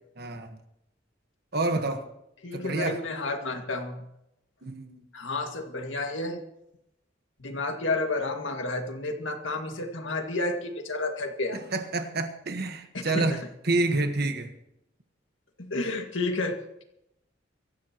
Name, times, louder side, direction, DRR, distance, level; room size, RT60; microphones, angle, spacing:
voice 1, 0.2-0.6 1.5-2.0 2.5-3.0 4.6-5.0 11.5-14.5, right 2 dB, 55° right, 1.4 m, -28 dB
voice 2, 2.4-4.0 5.1-6.4 7.4-11.6 12.9-13.4 15.6-16.8, left 2 dB, 85° left, 2.1 m, -31 dB
23.5 x 14.0 x 3.0 m
head